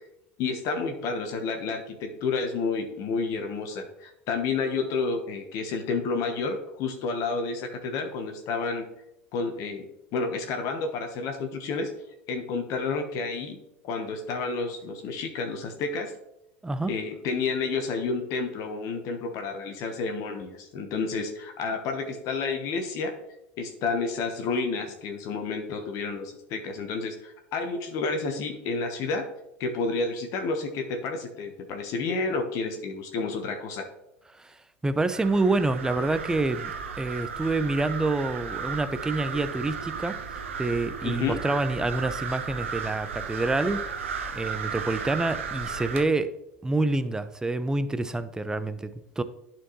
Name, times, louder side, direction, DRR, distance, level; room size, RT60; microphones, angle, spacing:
voice 1, 0.4-8.9 9.3-9.9 10.1-11.9 12.3-16.1 16.9-23.1 23.6-29.2 29.6-33.9 41.0-41.4, left 4 dB, 55° left, 5 dB, 1.1 m, -30 dB
voice 2, 34.8-40.1 40.6-43.8 44.3-46.3 46.6-49.2, right 2 dB, 10° right, 12 dB, 0.5 m, -27 dB
sound 1, 35.1-46.0, right 6 dB, 90° right, 0.8 m, -35 dB
11.0 x 4.4 x 3.0 m, 0.83 s
hypercardioid pair, 85°, 7 cm